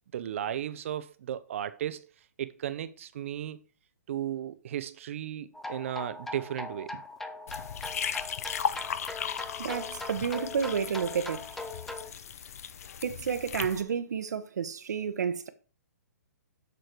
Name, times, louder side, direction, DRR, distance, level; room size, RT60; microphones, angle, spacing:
voice 1, 0.1-2.1 2.4-3.6 4.1-7.0, right 10 dB, 45° right, 0.8 m, -35 dB
sound 1, 5.5-12.1, left 2 dB, 5° left, 0.4 m, -41 dB
sound 2, 7.5-13.8, left 8 dB, 60° left, 0.8 m, -36 dB
voice 2, 9.6-11.6 13.0-15.5, right 7 dB, 70° right, 1.2 m, -31 dB
7.9 x 6.3 x 4.6 m
hypercardioid pair, 165°, 9 cm